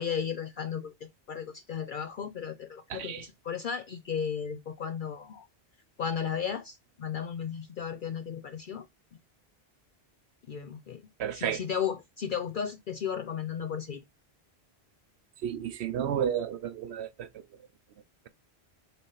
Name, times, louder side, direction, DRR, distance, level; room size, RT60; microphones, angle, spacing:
voice 1, 0.0-5.5 6.0-8.9 10.5-11.0 11.3-14.0, left 7 dB, 55° left, 0.7 m, -34 dB
voice 2, 2.9-3.3 11.2-11.6 15.4-17.4, right 9 dB, 80° right, 0.9 m, -32 dB
6.8 x 3.9 x 3.9 m
omnidirectional pair, 1.1 m